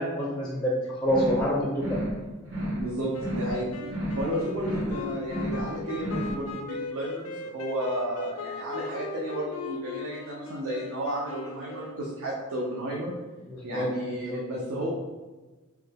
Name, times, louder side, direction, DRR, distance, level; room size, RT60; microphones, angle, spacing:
voice 1, 0.0-2.0 13.5-13.9 14.3-14.4, equal, 5° left, -6 dB, 0.4 m, -27 dB
sound 1, 1.0-1.5 1.7-2.2 2.4-2.9 3.1-3.6 3.8-4.3 4.5-5.0 5.2-5.7 5.9-6.4, equal, 60° right, 1.0 m, -32 dB
voice 2, 2.8-3.7 4.2-13.1 13.6-14.9, right 1 dB, 75° right, -4 dB, 0.5 m, -33 dB
sound 2, 3.1-12.3, left 3 dB, 85° left, 0.4 m, -38 dB
3.1 x 2.3 x 3.3 m, 1.2 s
head